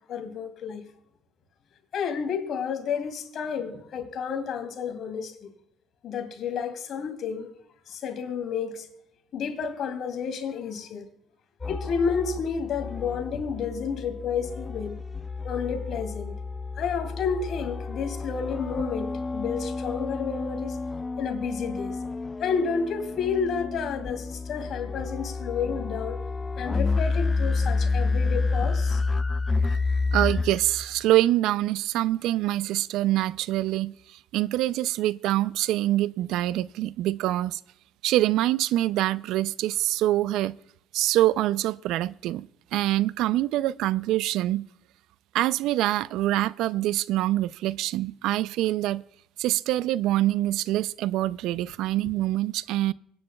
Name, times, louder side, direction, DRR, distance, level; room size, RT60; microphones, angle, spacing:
voice 1, 0.1-0.9 1.9-5.5 6.0-7.5 7.9-8.9 9.3-11.1 11.7-15.0 15.4-16.3 16.8-20.8 21.2-22.0 22.4-26.2 26.6-29.0, left 6 dB, 60° left, 2.5 m, -31 dB
sound 1, 11.6-31.0, left 3 dB, 25° left, 0.3 m, -30 dB
voice 2, 30.1-37.6 38.0-40.6 40.9-44.7 45.3-49.0 49.4-52.9, right 15 dB, 75° right, 0.3 m, -25 dB
25.0 x 9.8 x 2.2 m
supercardioid pair, 80°, 0 cm